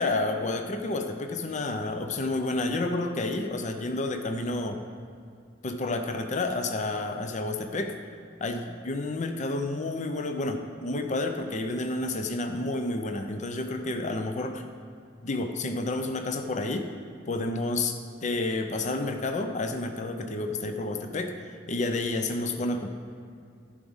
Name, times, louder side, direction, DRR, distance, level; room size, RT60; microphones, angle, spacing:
voice 1, 0.0-4.8 5.6-7.9 8.4-14.6 15.2-16.9 17.3-21.3 21.7-22.9, left 2 dB, 40° left, 6 dB, 0.6 m, -30 dB
11.5 x 5.0 x 5.5 m, 2.3 s
head